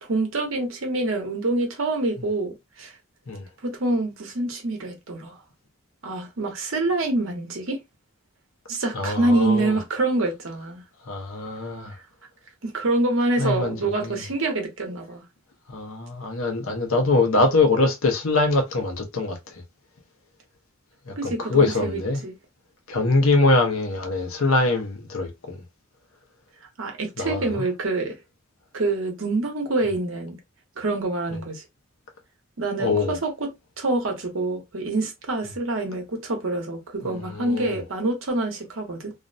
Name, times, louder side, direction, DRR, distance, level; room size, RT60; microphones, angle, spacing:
voice 1, 0.0-2.9 3.6-5.4 6.0-7.8 8.7-10.8 12.6-15.2 21.2-22.3 26.8-28.2 28.7-30.4 30.8-31.6 32.6-33.5 33.8-39.1, right 2 dB, 70° right, 0.8 m, -26 dB
voice 2, 8.9-9.7 11.1-11.9 13.4-14.2 15.7-19.6 21.1-22.2 22.9-25.6 27.2-27.6 32.8-33.2 37.0-37.8, left 3 dB, 80° left, 0.7 m, -23 dB
2.5 x 2.1 x 2.5 m
head